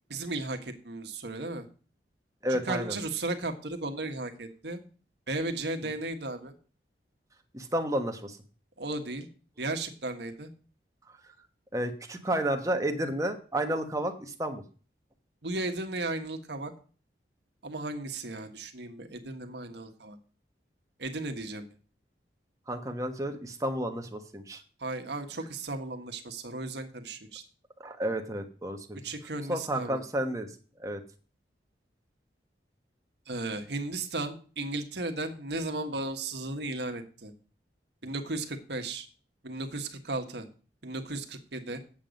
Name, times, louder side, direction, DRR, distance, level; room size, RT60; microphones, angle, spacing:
voice 1, 0.1-1.6 2.5-4.8 5.3-6.5 8.8-9.3 9.6-10.5 15.4-16.7 17.6-20.2 21.0-21.7 24.8-27.4 29.0-30.0 33.3-37.3 38.0-39.1 39.4-40.5 40.8-41.8, right 2 dB, 70° right, 6 dB, 1.4 m, -35 dB
voice 2, 2.4-3.0 7.5-8.4 11.7-14.6 22.7-24.6 27.8-29.0 29.5-30.5 30.8-31.0, right 1 dB, 20° right, 5 dB, 1.2 m, -31 dB
8.7 x 7.6 x 5.2 m, 0.38 s
head